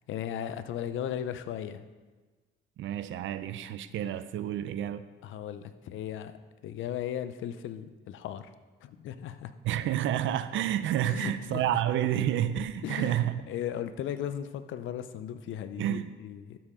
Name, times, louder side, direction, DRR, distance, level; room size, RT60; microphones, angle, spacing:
voice 1, 0.1-1.8 5.2-6.3 6.6-8.5 8.8-9.5 11.0-11.8 12.8-13.2 13.5-16.6, left 10 dB, 80° left, 0.7 m, -36 dB
voice 2, 2.8-5.1 9.6-13.4 15.8-16.1, right 11 dB, 75° right, 0.6 m, -29 dB
12.0 x 7.7 x 3.7 m
cardioid pair, 90°, 20 cm